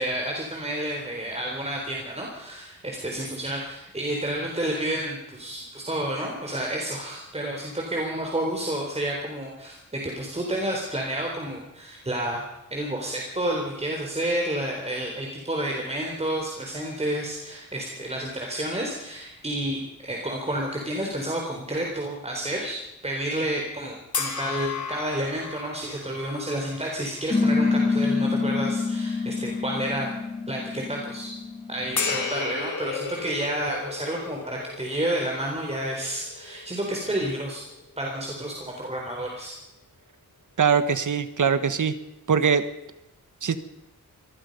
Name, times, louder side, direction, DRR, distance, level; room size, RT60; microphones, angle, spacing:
voice 1, 0.0-30.1 30.5-31.4 31.7-37.7 38.0-39.6, right 1 dB, 20° right, 0 dB, 3.9 m, -30 dB
sound 1, 24.1-27.7 28.2-28.4 32.0-38.4, left 5 dB, 60° left, 3.6 m, -34 dB
sound 2, 27.3-32.3, left 4 dB, 20° left, 2.3 m, -26 dB
voice 2, 40.6-41.9 42.3-42.6 43.4-43.6, right 6 dB, 60° right, 11 dB, 1.6 m, -22 dB
25.0 x 19.0 x 5.5 m, 0.91 s
wide cardioid pair, 110°, 34 cm